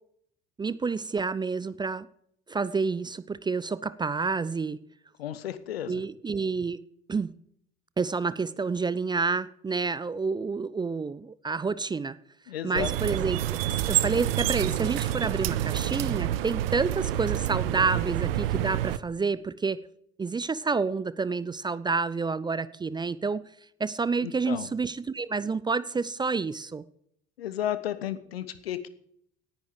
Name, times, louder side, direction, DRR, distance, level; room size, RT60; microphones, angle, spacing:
voice 1, 0.6-2.1 2.5-4.8 5.9-6.8 7.1-7.3 8.0-12.2 12.6-13.6 13.9-19.8 20.2-23.4 23.8-26.8, right 4 dB, 15° right, 0.5 m, -29 dB
voice 2, 5.2-6.0 12.5-12.9 24.2-24.7 27.4-28.9, left 11 dB, 70° left, 1.1 m, -33 dB
sound 1, 12.8-19.0, right 13 dB, 65° right, 0.8 m, -28 dB
18.0 x 10.5 x 5.0 m
figure-of-eight pair, 65°, 31 cm